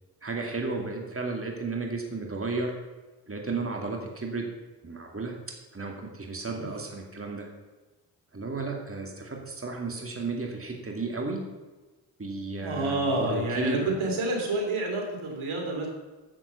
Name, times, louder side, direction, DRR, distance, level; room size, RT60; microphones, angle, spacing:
voice 1, 0.2-2.7 3.3-4.5 4.8-5.3 5.7-7.5 8.3-11.4 12.2-14.0, right 3 dB, 25° right, 1 dB, 2.2 m, -33 dB
voice 2, 12.6-15.9, right 2 dB, 75° right, 1 dB, 2.8 m, -28 dB
7.6 x 7.5 x 6.8 m, 1.2 s
supercardioid pair, 45°, 49 cm